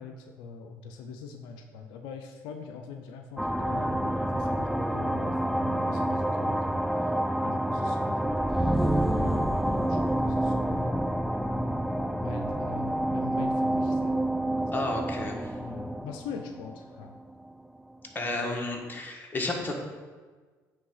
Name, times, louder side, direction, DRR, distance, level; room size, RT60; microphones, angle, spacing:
voice 1, 0.0-7.2 7.4-11.0 12.2-14.7 15.6-17.2, left 5 dB, 85° left, 5 dB, 0.5 m, -43 dB
sound 1, 3.4-17.5, right 1 dB, ahead, 0.3 m, -28 dB
voice 2, 14.7-15.5 18.1-19.7, left 2 dB, 25° left, 0 dB, 1.5 m, -32 dB
8.5 x 3.4 x 5.6 m, 1.4 s
supercardioid pair, 75°, 7 cm